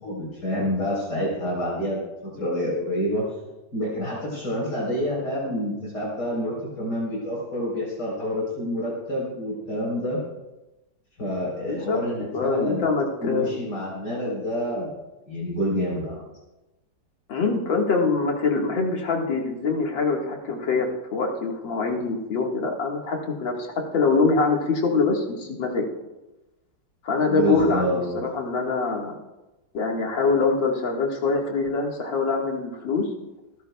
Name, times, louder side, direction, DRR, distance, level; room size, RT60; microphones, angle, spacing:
voice 1, 0.0-2.0 2.4-3.2 3.7-10.2 11.2-12.8 13.2-14.9 15.3-16.3 27.3-28.2, equal, 60° left, -4 dB, 4.6 m, -28 dB
voice 2, 11.7-12.0 12.3-13.5 17.3-23.7 23.9-25.9 27.0-29.2 29.7-33.1, left 4 dB, 85° left, 0 dB, 2.5 m, -24 dB
28.0 x 11.0 x 2.3 m, 1.0 s
omnidirectional pair, 2.0 m